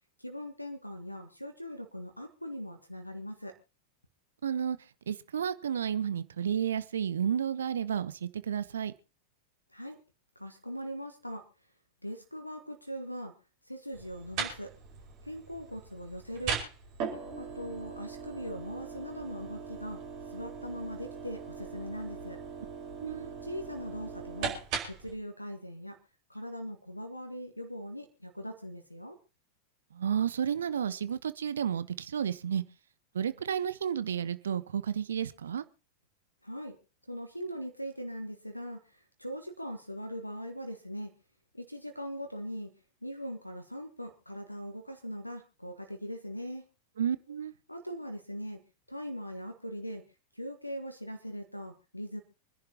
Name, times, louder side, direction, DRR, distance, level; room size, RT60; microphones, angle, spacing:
voice 1, 0.2-3.5 9.7-10.0 10.3-11.5 12.0-13.3 13.6-14.7 15.2-16.6 17.4-20.0 20.3-22.4 23.4-24.6 24.8-26.0 26.3-29.2 36.4-36.8 37.1-41.1 41.5-42.7 43.0-46.7 47.7-48.6 48.9-50.0 50.3-52.2, equal, 90° left, 1.5 m, -40 dB
voice 2, 4.4-4.8 5.1-8.9 23.0-23.3 29.9-32.6 33.1-35.6 47.0-47.5, right 8 dB, 65° right, 0.9 m, -31 dB
sound 1, 13.9-25.1, right 6 dB, 45° right, 5.2 m, -40 dB
26.5 x 10.5 x 2.9 m
figure-of-eight pair, 90°, 0 cm